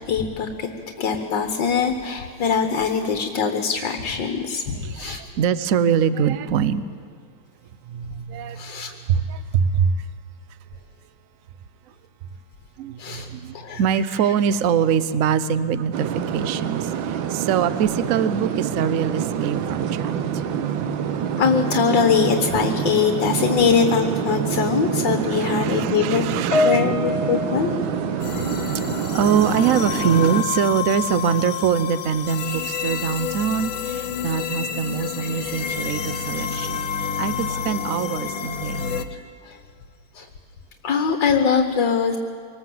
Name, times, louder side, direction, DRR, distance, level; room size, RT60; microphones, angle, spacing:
voice 1, 0.1-0.7 1.0-5.2 8.5-8.9 13.0-13.3 13.5-14.3 21.4-26.2 26.6-27.7 28.3-28.4 35.2-36.1 37.5-37.7 39.4-39.6 40.2-40.3 40.8-42.2, left 6 dB, 70° left, 6 dB, 1.8 m, -22 dB
voice 2, 4.7-6.8 7.9-8.7 9.1-10.0 12.8-20.4 25.2-26.8 28.2-38.9, right 7 dB, 60° right, 14 dB, 0.9 m, -24 dB
sound 1, 15.9-30.4, right 8 dB, 90° right, 1.7 m, -26 dB
Piano, 26.5-29.2 29.4-29.8 30.5-30.7, left 3 dB, 45° left, 1.1 m, -26 dB
sound 2, 28.2-39.0, left 7 dB, 90° left, 1.9 m, -29 dB
24.0 x 19.5 x 7.8 m, 2.1 s
omnidirectional pair, 2.1 m